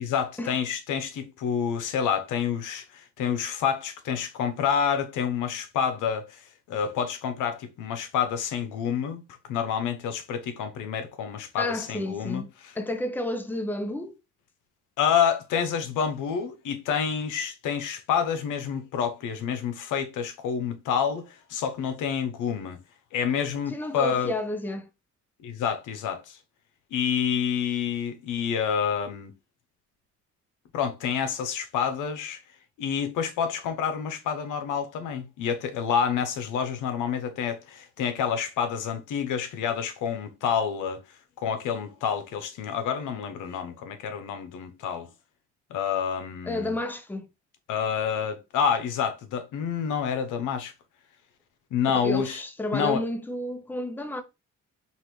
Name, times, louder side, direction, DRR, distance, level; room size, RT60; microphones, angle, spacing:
voice 1, 0.0-9.2 9.5-12.4 15.0-22.8 23.1-24.3 25.4-26.4 26.9-29.3 30.7-32.4 32.8-41.0 41.4-45.1 45.7-46.7 47.7-50.7 51.7-52.4 52.7-53.0, left 7 dB, 90° left, 0.8 m, -28 dB
voice 2, 11.6-12.5 12.7-14.1 23.7-24.9 46.5-47.3 51.9-54.2, left 1 dB, 5° left, 0.7 m, -31 dB
5.6 x 2.5 x 3.1 m
cardioid pair, 90°, 30 cm